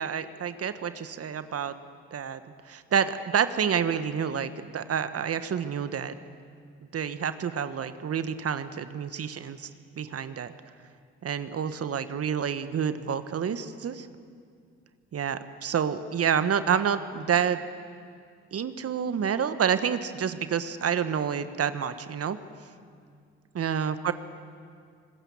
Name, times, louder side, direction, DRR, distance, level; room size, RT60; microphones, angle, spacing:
voice 1, 0.0-1.7 2.1-2.4 2.7-6.1 6.9-9.7 10.0-10.5 11.2-14.1 15.1-17.6 18.5-22.4 23.5-24.1, right 7 dB, 45° right, 12 dB, 1.3 m, -28 dB
25.5 x 20.5 x 7.3 m, 2.2 s
hypercardioid pair, 50°, 32 cm